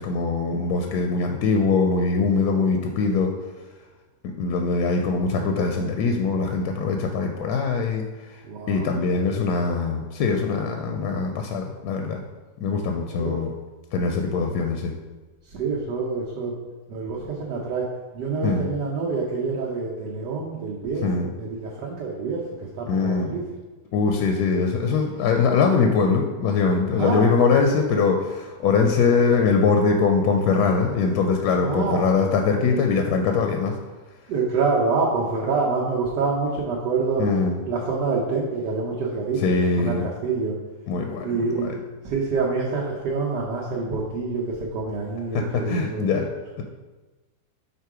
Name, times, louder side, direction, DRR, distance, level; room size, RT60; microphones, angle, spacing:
voice 1, 0.0-3.3 4.4-8.4 8.7-12.2 12.6-13.5 13.9-14.9 18.4-18.7 21.0-21.3 22.9-23.3 23.9-33.8 37.2-37.6 39.4-40.1 40.9-41.7 45.3-46.3 46.6-46.7, left 4 dB, 75° left, 3 dB, 1.0 m, -22 dB
voice 2, 8.4-8.9 9.1-9.6 13.2-13.4 15.5-16.6 16.9-17.9 18.1-22.4 22.8-23.4 27.0-27.3 31.6-32.1 34.3-37.2 37.6-40.6 41.2-41.7 42.0-46.1, right 4 dB, 80° right, -3 dB, 1.4 m, -26 dB
5.6 x 3.7 x 4.7 m, 1.2 s
omnidirectional pair, 1.9 m